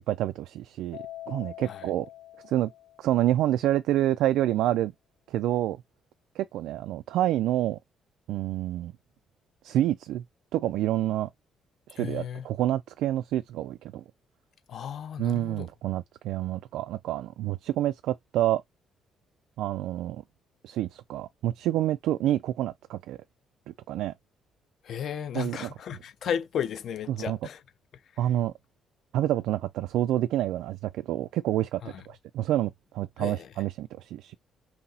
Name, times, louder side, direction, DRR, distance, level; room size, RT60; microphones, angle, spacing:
voice 1, 0.1-1.0 1.3-2.1 2.4-2.7 3.0-4.9 5.3-5.8 6.4-7.8 8.3-8.9 9.6-10.2 10.5-11.3 11.9-14.0 15.2-18.6 19.6-20.2 20.6-23.2 23.7-24.1 25.3-25.7 27.1-27.4 28.2-28.5 29.1-34.4, right 13 dB, 90° right, 0.4 m, -28 dB
Keyboard (musical), 0.9-3.4, left 14 dB, 80° left, 2.2 m, -44 dB
voice 2, 12.0-12.5 14.7-15.7 24.8-27.6 31.8-32.0 33.2-33.5, left 8 dB, 50° left, 0.6 m, -34 dB
5.6 x 2.8 x 2.8 m
cardioid pair, 170°, 0 cm